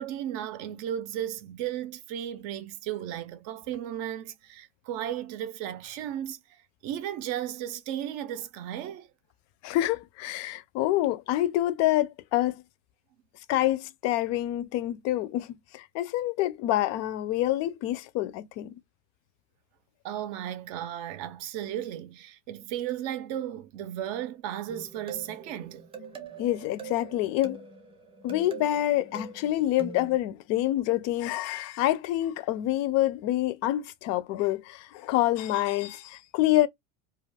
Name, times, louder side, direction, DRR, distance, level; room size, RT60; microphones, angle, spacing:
voice 1, 0.0-6.4 6.8-9.1 20.0-25.8, right 11 dB, 55° right, 0.6 m, -35 dB
voice 2, 9.6-12.6 13.5-18.7 26.4-27.6 28.2-36.7, left 14 dB, 45° left, 0.4 m, -27 dB
sound 1, 24.7-30.2, right 4 dB, 15° right, 0.7 m, -44 dB
2.4 x 2.3 x 3.3 m
supercardioid pair, 135°, 40 cm